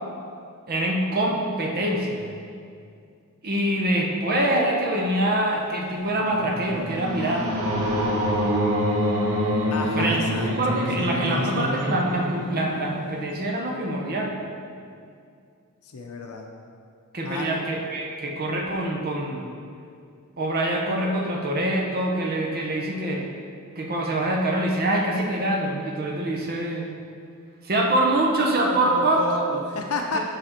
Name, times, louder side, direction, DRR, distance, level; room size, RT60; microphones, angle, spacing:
voice 1, 0.7-2.3 3.4-7.5 9.9-10.2 10.5-14.3 17.1-19.5 20.4-23.2 23.8-26.9 27.6-29.2 30.1-30.2, right 1 dB, 45° right, 0 dB, 0.7 m, -25 dB
sound 1, 6.0-13.3, equal, 85° right, 1.1 m, -26 dB
voice 2, 9.7-10.5 11.0-11.9 15.9-16.5 17.2-17.5 28.7-30.2, left 2 dB, 80° left, 2 dB, 0.6 m, -31 dB
6.6 x 5.1 x 4.4 m, 2.3 s
head